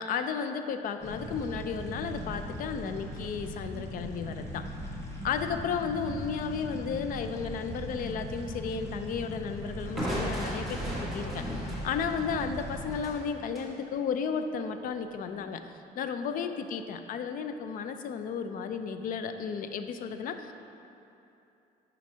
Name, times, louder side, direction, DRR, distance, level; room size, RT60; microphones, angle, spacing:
voice 1, 0.0-4.7 5.2-15.7 16.0-20.5, left 6 dB, 55° left, 8 dB, 0.4 m, -33 dB
sound 1, 1.0-13.0, equal, 15° left, 1.1 m, -39 dB
Crushing, 10.0-13.7, equal, ahead, 1.5 m, -36 dB
9.4 x 5.2 x 2.8 m, 2.8 s
cardioid pair, 110°, 17 cm